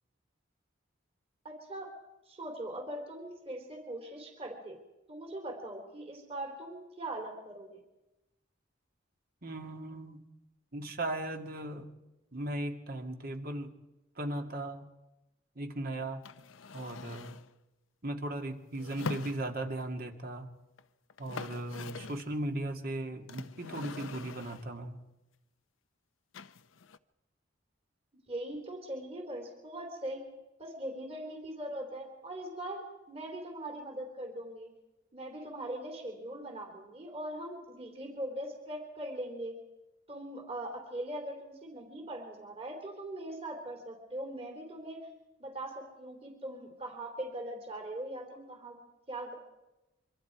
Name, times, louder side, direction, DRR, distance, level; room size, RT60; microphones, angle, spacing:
voice 1, 1.4-1.9 2.3-4.8 5.1-7.8 28.3-30.2 30.6-34.7 35.1-39.6 40.1-45.1 45.4-48.8 49.1-49.4, right 1 dB, 30° right, 2 dB, 3.5 m, -41 dB
voice 2, 9.4-10.2 10.7-11.9 12.3-13.7 14.2-14.9 15.6-16.2 16.7-17.4 18.0-20.5 21.2-25.0, right 1 dB, 50° right, 4 dB, 2.3 m, -37 dB
sound 1, 16.2-17.5 18.7-19.8 20.8-20.9 21.1-22.3 23.3-24.8 26.3-27.0, left 4 dB, 90° left, 0.8 m, -43 dB
26.0 x 24.5 x 4.7 m, 1.0 s
head